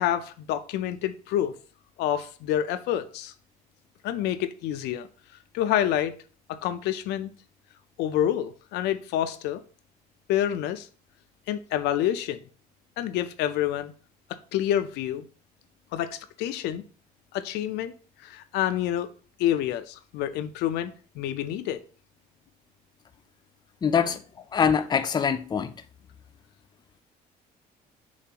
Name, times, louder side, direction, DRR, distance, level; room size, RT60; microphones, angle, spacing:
voice 1, 0.0-1.5 2.0-3.3 4.0-5.1 5.5-6.2 6.5-7.3 8.0-9.6 10.3-10.9 11.5-12.4 13.0-13.9 14.5-15.3 15.9-16.8 17.3-17.9 18.2-19.1 19.4-21.8 24.1-24.2, left 11 dB, 85° left, 0.5 m, -28 dB
voice 2, 23.8-24.2 24.5-25.7, left 7 dB, 25° left, 0.4 m, -23 dB
6.9 x 2.5 x 2.9 m
cardioid pair, 110°, 17 cm